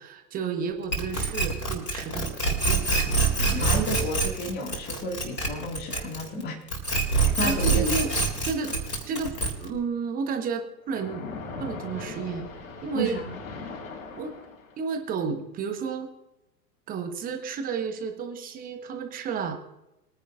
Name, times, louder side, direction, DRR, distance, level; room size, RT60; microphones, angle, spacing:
voice 1, 0.0-3.8 7.4-8.2 8.4-8.7 9.1-11.3 11.6-12.5 12.8-13.2 14.1-14.3 14.8-16.1 16.9-19.6, right 5 dB, 15° right, 6 dB, 1.2 m, -32 dB
sound 1, 0.9-6.4 6.7-9.8, right 3 dB, 80° left, 3.7 m, -25 dB
voice 2, 3.4-6.6 7.4-7.8 12.9-13.4, equal, 20° left, -1 dB, 2.2 m, -31 dB
Splash splatter, 10.9-14.9, left 3 dB, 50° left, 3.9 m, -39 dB
23.0 x 10.0 x 2.5 m, 0.91 s
figure-of-eight pair, 110°, 49 cm